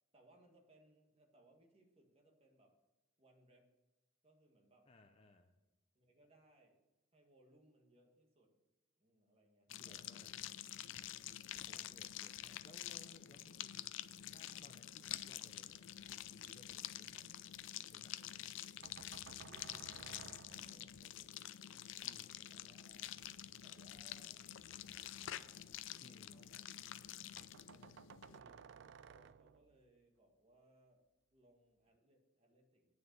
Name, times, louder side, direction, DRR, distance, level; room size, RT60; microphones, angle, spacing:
voice 1, 0.1-2.8 3.2-3.7 4.2-4.9 6.0-6.9 7.1-8.6 9.0-10.5 10.8-10.9 11.6-12.1 19.4-21.8 22.5-23.1 23.6-26.6 27.7-27.9 28.3-32.9, right 1 dB, 30° right, 1 dB, 1.7 m, -70 dB
voice 2, 4.9-5.5 9.7-10.3 11.7-14.0 14.3-17.3 17.9-18.5 22.0-22.5 26.0-26.5, left 2 dB, 25° left, 3 dB, 0.7 m, -64 dB
sound 1, 9.7-28.4, left 12 dB, 60° left, 0.4 m, -48 dB
sound 2, 18.8-21.2 23.1-26.4 26.7-26.8 27.1-27.2 27.4-29.9, right 7 dB, 55° right, 0.3 m, -59 dB
9.2 x 6.6 x 6.8 m, 1.1 s
head